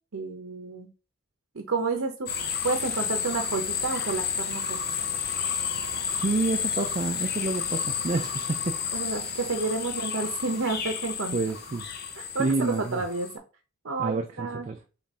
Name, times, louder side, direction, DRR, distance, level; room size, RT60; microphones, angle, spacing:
voice 1, 0.1-0.9 1.5-2.3 2.6-4.8 8.9-11.4 12.2-13.3 13.8-14.7, right 4 dB, 70° right, 0.7 m, -30 dB
sound 1, 2.3-13.4, left 7 dB, 50° left, 0.6 m, -31 dB
voice 2, 6.1-9.1 11.3-11.9 12.4-13.0 14.0-14.8, right 3 dB, 35° right, 0.3 m, -29 dB
3.5 x 3.2 x 4.1 m
head